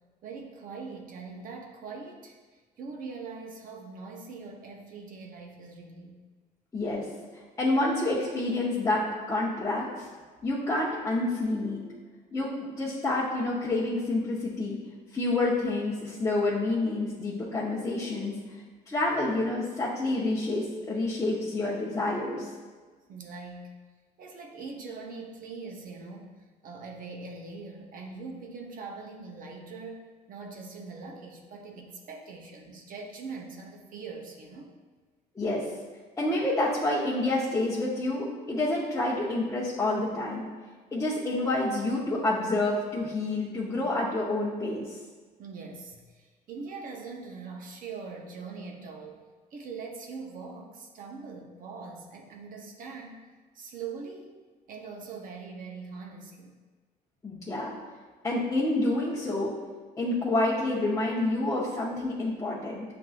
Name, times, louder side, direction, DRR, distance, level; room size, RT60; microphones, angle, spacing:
voice 1, 0.2-2.3 2.8-6.2 23.1-23.8 24.2-34.7 45.4-49.2 49.5-53.2 53.5-54.3 54.7-56.5, right 4 dB, 55° right, 0 dB, 0.7 m, -42 dB
voice 2, 6.7-7.0 7.6-10.1 10.4-11.8 12.3-14.8 15.1-18.3 18.9-22.5 35.4-35.7 36.2-40.5 40.9-45.0 57.2-57.8 58.2-59.5 60.0-62.8, left 2 dB, 20° left, -9 dB, 0.8 m, -28 dB
7.4 x 2.6 x 2.4 m, 1.4 s
cardioid pair, 110°, 17 cm